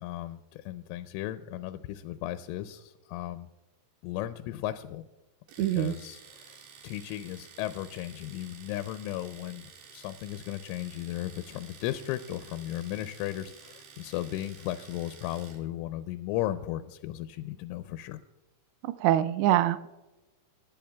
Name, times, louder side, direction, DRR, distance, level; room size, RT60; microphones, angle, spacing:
voice 1, 0.0-3.5 4.0-5.0 5.6-6.6 6.8-18.2, left 14 dB, 85° left, 10 dB, 3.0 m, -36 dB
Domestic sounds home sounds, 5.5-15.7, right 6 dB, 65° right, 3.5 m, -52 dB
voice 2, 5.6-5.9 18.8-19.9, right 13 dB, 85° right, 11 dB, 2.5 m, -24 dB
20.5 x 10.5 x 2.3 m, 1.1 s
omnidirectional pair, 5.5 m